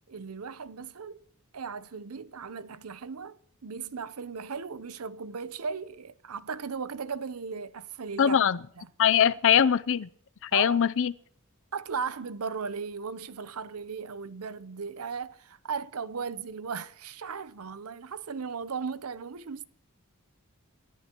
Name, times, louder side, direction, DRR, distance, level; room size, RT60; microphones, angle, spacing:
voice 1, 0.1-1.2 1.5-8.4 8.8-8.9 10.5-10.8 11.7-19.6, right 5 dB, 80° right, 0.7 m, -37 dB
voice 2, 8.2-8.6 9.0-10.1 10.4-11.1, left 8 dB, 60° left, 0.5 m, -22 dB
28.5 x 14.0 x 3.0 m
head